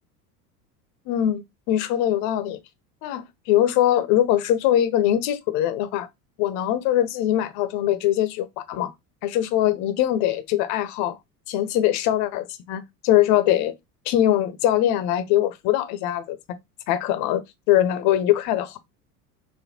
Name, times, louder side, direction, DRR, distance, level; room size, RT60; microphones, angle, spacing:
voice 1, 1.1-2.6 3.0-6.1 6.4-8.9 9.2-11.2 11.5-13.7 14.1-16.6 16.9-18.8, left 12 dB, 35° left, 0.5 m, -22 dB
5.1 x 2.1 x 2.7 m
figure-of-eight pair, 75°, 48 cm